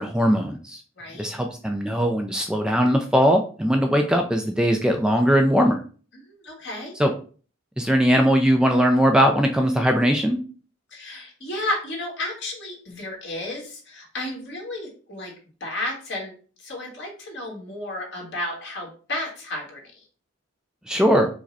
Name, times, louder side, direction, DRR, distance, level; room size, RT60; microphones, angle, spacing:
voice 1, 0.0-0.8 1.2-5.8 7.0-7.1 7.8-10.4 20.9-21.3, equal, 5° right, 4 dB, 0.3 m, -20 dB
voice 2, 1.0-1.3 6.2-6.9 10.9-15.3 15.6-16.3 16.6-20.0, left 1 dB, 60° left, -1 dB, 1.7 m, -32 dB
4.9 x 2.2 x 4.0 m, 0.39 s
head